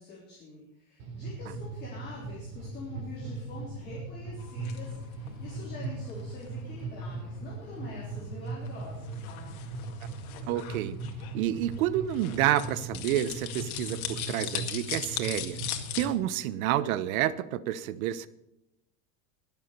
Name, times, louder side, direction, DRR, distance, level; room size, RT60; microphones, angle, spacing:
voice 1, 0.0-9.6, left 3 dB, 25° left, -6 dB, 3.7 m, -45 dB
sound 1, 1.0-16.1, right 3 dB, 50° right, 3.6 m, -39 dB
sound 2, 4.4-16.1, left 11 dB, 90° left, 2.1 m, -40 dB
voice 2, 10.5-11.0 11.3-15.6 15.9-18.3, right 12 dB, 75° right, 16 dB, 1.0 m, -29 dB
21.0 x 7.4 x 6.7 m, 0.87 s
supercardioid pair, 170°, 42 cm